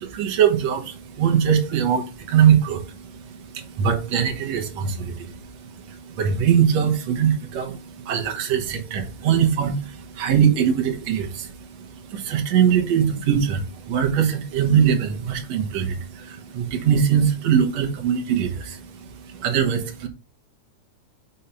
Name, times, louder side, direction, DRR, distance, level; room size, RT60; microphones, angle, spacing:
voice 1, 0.0-20.1, right 8 dB, 65° right, 2.4 m, -22 dB
6.8 x 3.7 x 5.7 m
omnidirectional pair, 3.4 m